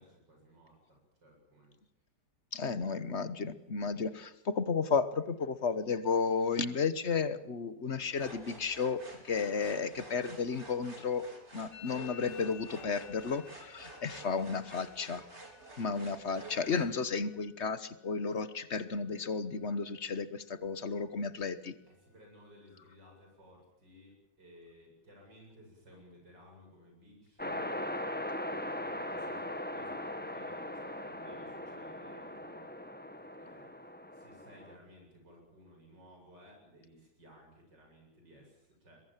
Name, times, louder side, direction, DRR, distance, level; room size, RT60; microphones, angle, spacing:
voice 1, 0.0-1.7 21.9-27.8 28.5-32.7 33.4-33.7 34.1-39.0, equal, 80° right, 1 dB, 8.5 m, -58 dB
voice 2, 2.5-11.2 11.5-15.2 15.8-21.7, left 5 dB, 45° left, 14 dB, 1.3 m, -33 dB
sound 1, 8.1-16.9, right 2 dB, 40° right, 4.6 m, -50 dB
Musical instrument, 11.7-19.4 19.6-20.2 20.4-21.0 21.3-23.3, left 8 dB, 65° left, 6.4 m, -57 dB
sound 2, 27.4-34.8, left 1 dB, 5° left, 1.2 m, -40 dB
22.5 x 22.0 x 7.4 m, 0.85 s
omnidirectional pair, 1.9 m